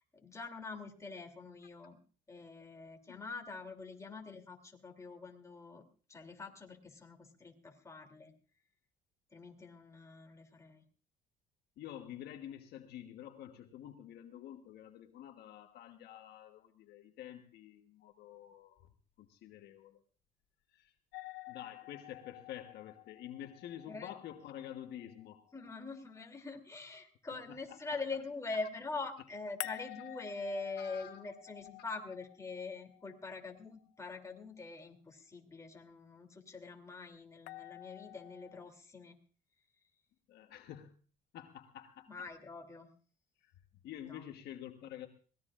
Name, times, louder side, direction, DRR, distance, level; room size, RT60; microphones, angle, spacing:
voice 1, 0.1-2.0 2.3-5.8 6.1-8.3 9.3-10.8 23.9-24.1 25.5-39.1 42.1-42.9 44.1-44.2, left 3 dB, 20° left, 3 dB, 3.0 m, -44 dB
voice 2, 11.8-18.9 19.2-20.0 20.7-20.9 21.5-25.4 27.5-27.8 30.8-31.2 40.3-41.0 41.3-42.3 43.4-43.5 43.8-45.1, left 11 dB, 75° left, 6 dB, 1.3 m, -49 dB
sound 1, 21.1-26.1 29.6-33.7 37.5-38.7, left 18 dB, 90° left, 0.7 m, -50 dB
23.5 x 18.5 x 2.5 m, 0.40 s
cardioid pair, 110°, 17 cm